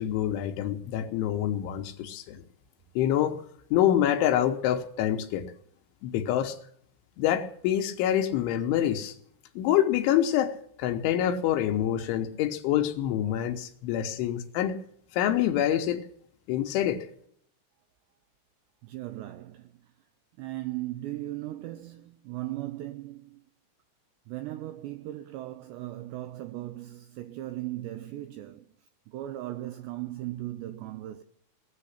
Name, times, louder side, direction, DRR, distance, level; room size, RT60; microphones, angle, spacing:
voice 1, 0.0-2.4 3.0-3.4 3.7-5.5 6.0-6.6 7.2-9.1 9.6-14.8 15.1-16.0 16.5-17.1, left 11 dB, 75° left, 3.2 m, -26 dB
voice 2, 18.8-19.9 20.4-23.4 24.3-31.2, right 15 dB, 80° right, 2.5 m, -38 dB
19.5 x 7.6 x 10.0 m
omnidirectional pair, 5.9 m